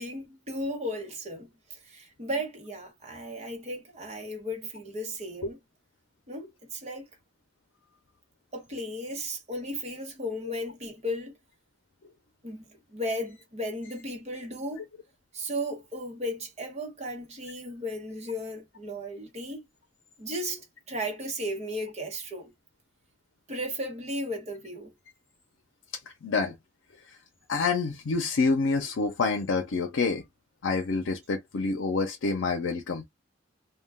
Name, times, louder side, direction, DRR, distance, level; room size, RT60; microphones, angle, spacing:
voice 1, 0.0-5.6 6.3-7.1 8.5-11.4 12.4-14.8 15.3-19.6 20.2-22.5 23.5-24.9, equal, 35° right, 1.0 m, -35 dB
voice 2, 26.2-26.5 27.5-30.2 30.6-33.0, left 4 dB, 85° left, 0.5 m, -27 dB
2.2 x 2.2 x 3.3 m
head